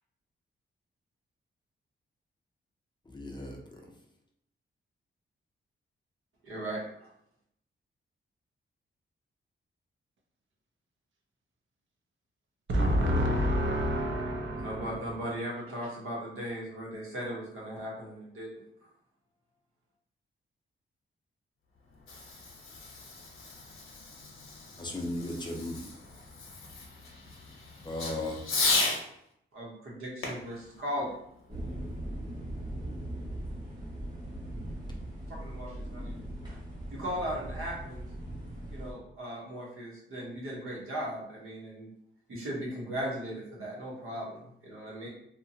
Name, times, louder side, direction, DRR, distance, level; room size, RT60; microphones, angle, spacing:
voice 1, 3.1-3.9 24.8-25.9 27.8-28.5, left 1 dB, 20° left, 0.4 m, -36 dB
voice 2, 6.4-7.1 14.6-18.6 29.5-31.1 35.3-36.2 36.9-38.1 38.7-41.9 42.3-45.1, equal, 90° right, 1.0 m, -37 dB
voice 3, 12.7-15.2, equal, 65° right, 0.6 m, -28 dB
Fireworks, 21.8-29.0 30.2-31.8, left 3 dB, 80° left, 0.8 m, -35 dB
sound 1, 31.5-38.9, right 1 dB, 20° right, 0.8 m, -39 dB
2.8 x 2.2 x 2.7 m
wide cardioid pair, 120°, 21 cm